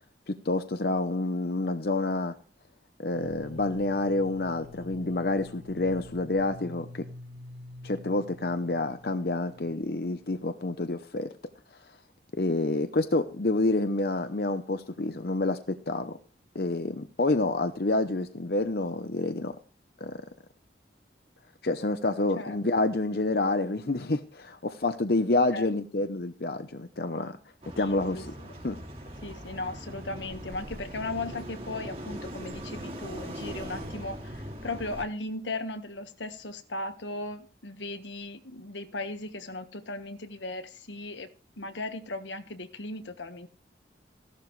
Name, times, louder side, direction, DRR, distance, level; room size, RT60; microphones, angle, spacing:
voice 1, 0.3-2.3 3.0-7.1 7.8-11.3 12.4-16.2 16.5-19.6 20.0-20.3 21.6-27.4 27.8-28.3 28.6-28.8, left 2 dB, 60° left, 9 dB, 0.8 m, -28 dB
sound 1, 3.1-10.8, left 2 dB, 85° right, 3.7 m, -47 dB
sound 2, 27.6-35.0, equal, 35° right, 3.0 m, -40 dB
voice 2, 27.8-28.5 29.2-41.3 41.6-43.5, left 2 dB, 90° left, 8 dB, 1.5 m, -37 dB
15.5 x 12.0 x 3.2 m, 0.38 s
head